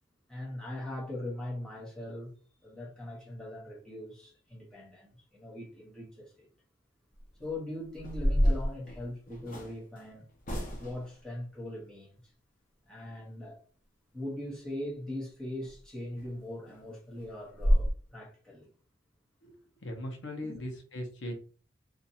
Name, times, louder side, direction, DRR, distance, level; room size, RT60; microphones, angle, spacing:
voice 1, 0.3-2.3 2.6-6.5 7.4-10.3 10.7-12.3 12.9-13.6 14.1-18.7 20.4-20.6, left 1 dB, 5° left, 1.1 m, -41 dB
sound 1, 7.1-7.4 7.9-9.7 10.4-11.1 15.6-15.7 16.2-16.3 16.7-16.8 17.2-17.3 17.5-17.9, equal, 45° left, 0.7 m, -28 dB
voice 2, 19.8-21.3, left 1 dB, 70° left, 0.9 m, -39 dB
2.6 x 2.5 x 4.1 m
head